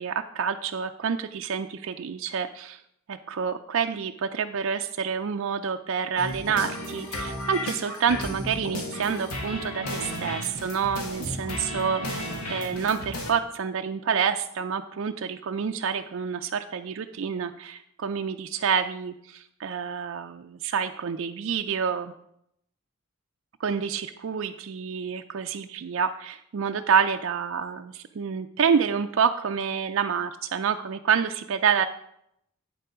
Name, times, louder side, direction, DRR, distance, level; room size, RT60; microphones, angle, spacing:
voice 1, 0.0-2.8 3.1-22.1 23.6-31.9, right 6 dB, 60° right, 5 dB, 0.4 m, -28 dB
sound 1, 6.2-13.3, left 1 dB, 90° left, 1.7 m, -34 dB
8.6 x 6.9 x 4.9 m, 0.75 s
head